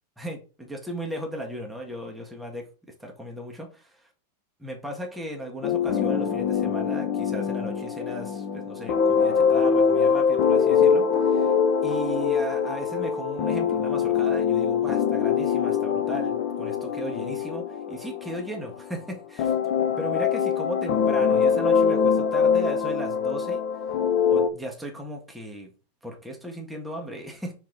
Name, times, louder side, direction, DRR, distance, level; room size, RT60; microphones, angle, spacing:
voice 1, 0.2-2.7 3.0-4.0 4.6-11.5 11.8-19.5 20.0-23.6 24.3-25.7 26.0-27.5, equal, ahead, 1 dB, 1.3 m, -36 dB
sound 1, 5.6-18.9 19.4-24.5, left 6 dB, 85° left, 1.4 m, -23 dB
7.0 x 4.7 x 4.0 m, 0.36 s
omnidirectional pair, 2.0 m